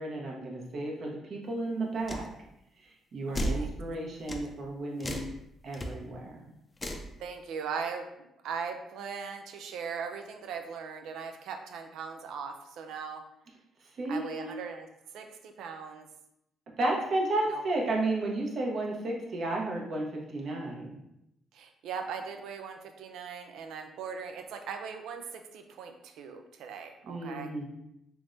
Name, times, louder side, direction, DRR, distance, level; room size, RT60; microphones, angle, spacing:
voice 1, 0.0-2.3 2.8-5.2 5.6-6.5 14.0-14.6 16.8-21.0 27.1-27.6, right 2 dB, 60° right, -1 dB, 0.9 m, -33 dB
sound 1, 2.1-2.3 3.3-3.6 4.3-4.5 5.0-5.3 5.7-5.9 6.8-7.1, equal, 25° left, 0.5 m, -33 dB
voice 2, 3.3-3.7 7.2-13.2 14.1-14.9 15.1-16.1 17.5-17.6 21.5-27.6, right 6 dB, 85° right, 6 dB, 0.4 m, -39 dB
3.4 x 3.2 x 2.6 m, 0.82 s
cardioid pair, 90°, 0 cm